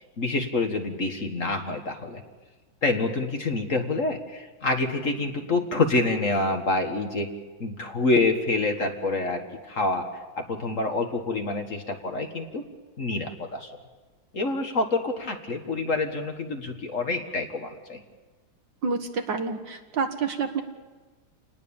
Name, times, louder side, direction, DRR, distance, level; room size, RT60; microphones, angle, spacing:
voice 1, 0.0-2.2 2.8-7.3 7.6-10.1 10.4-12.7 13.0-13.7 14.3-18.0, left 3 dB, 40° left, 5 dB, 1.8 m, -27 dB
voice 2, 18.8-20.6, right 5 dB, 65° right, 6 dB, 2.2 m, -28 dB
28.0 x 19.5 x 7.2 m, 1.3 s
omnidirectional pair, 2.2 m